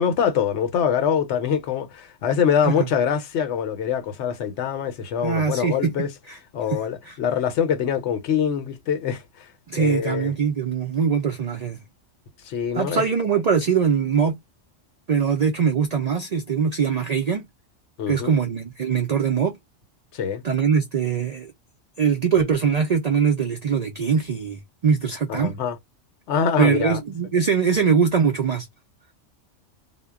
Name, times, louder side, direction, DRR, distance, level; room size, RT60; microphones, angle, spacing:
voice 1, 0.0-6.1 6.5-10.3 12.4-13.0 18.0-18.4 20.1-20.4 25.3-25.8 26.3-27.0, left 7 dB, 70° left, 0.9 m, -24 dB
voice 2, 5.2-5.9 6.3-6.4 6.7-6.8 7.1-7.2 9.7-11.8 12.7-14.4 15.1-17.5 18.1-19.6 20.4-21.5 22.0-25.6 26.6-28.7, right 6 dB, 75° right, 0.3 m, -22 dB
2.2 x 2.0 x 3.4 m
omnidirectional pair, 1.2 m